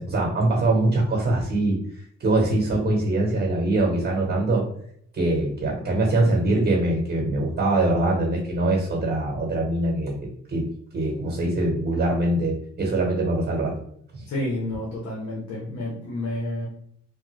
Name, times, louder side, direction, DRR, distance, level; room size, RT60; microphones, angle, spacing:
voice 1, 0.0-1.8 2.2-4.6 5.1-10.2 10.5-10.6 10.9-13.8 14.1-14.3, right 2 dB, 35° right, -1 dB, 1.1 m, -23 dB
voice 2, 14.3-16.7, left 1 dB, 60° left, -4 dB, 1.0 m, -30 dB
3.2 x 2.1 x 3.1 m, 0.66 s
cardioid pair, 90°, 30 cm